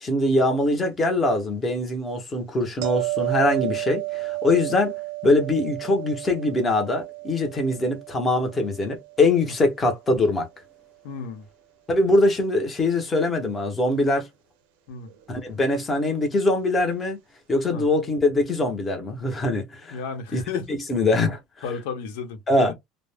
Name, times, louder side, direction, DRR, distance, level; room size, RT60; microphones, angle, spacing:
voice 1, 0.0-4.9 5.2-10.5 11.9-14.3 15.3-17.2 17.5-20.0 20.3-20.4 20.7-21.4 22.5-22.7, left 2 dB, 15° left, 0.8 m, -22 dB
sound 1, 2.8-9.8 15.1-15.2, right 25 dB, 80° right, 0.5 m, -32 dB
voice 2, 11.0-11.5 14.9-15.1 17.7-17.8 19.9-20.8 21.6-22.7, left 5 dB, 85° left, 0.8 m, -33 dB
2.4 x 2.0 x 3.3 m
cardioid pair, 160°, 0 cm